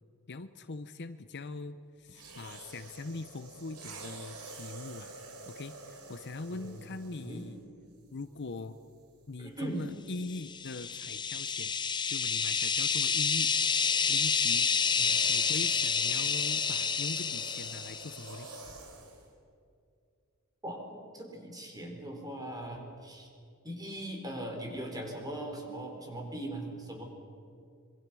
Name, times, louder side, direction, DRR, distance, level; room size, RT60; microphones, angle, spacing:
voice 1, 0.3-5.1 5.5-7.6 8.1-8.8 9.3-11.8 12.1-13.5 14.1-14.7 15.3-18.5, left 3 dB, 50° left, 12 dB, 0.8 m, -41 dB
sound 1, 2.1-7.6 8.4-8.6 12.6-19.3, right 3 dB, 85° right, 4.3 m, -48 dB
voice 2, 6.5-6.8 7.2-7.4 9.4-9.8 14.9-15.1 20.6-23.3 23.6-27.0, right 1 dB, 15° right, 2 dB, 4.5 m, -40 dB
sound 2, 10.4-18.2, left 6 dB, 20° left, 0.6 m, -29 dB
26.0 x 23.5 x 6.3 m, 2.4 s
head